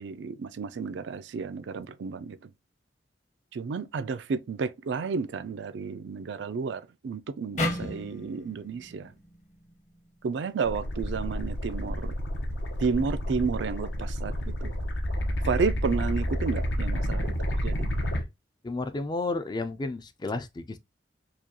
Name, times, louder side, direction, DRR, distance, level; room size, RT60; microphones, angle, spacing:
voice 1, 0.0-2.4 3.5-9.1 10.2-12.1 12.8-14.3 14.6-14.7 15.4-17.9, right 5 dB, 80° right, 0.4 m, -31 dB
sound 1, 7.6-10.8, left 1 dB, 40° left, 0.9 m, -35 dB
sound 2, 10.6-18.2, equal, 85° left, 1.0 m, -30 dB
voice 2, 18.6-20.8, left 3 dB, 25° left, 0.3 m, -32 dB
4.7 x 2.3 x 2.8 m
head